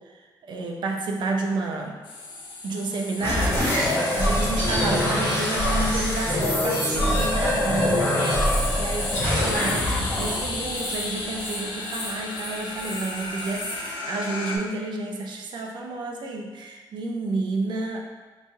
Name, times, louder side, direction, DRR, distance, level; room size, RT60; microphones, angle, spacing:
voice 1, 0.5-2.0 2.6-3.7 4.1-8.2 8.8-18.0, right 2 dB, 70° right, 1 dB, 0.5 m, -30 dB
sound 1, 2.0-14.6, left 3 dB, 90° left, 0.5 m, -34 dB
sound 2, 3.2-11.4, left 1 dB, 30° left, 1.0 m, -24 dB
sound 3, 8.2-13.9, equal, 5° right, 1.4 m, -37 dB
3.0 x 2.7 x 3.4 m, 1.3 s
wide cardioid pair, 150°, 8 cm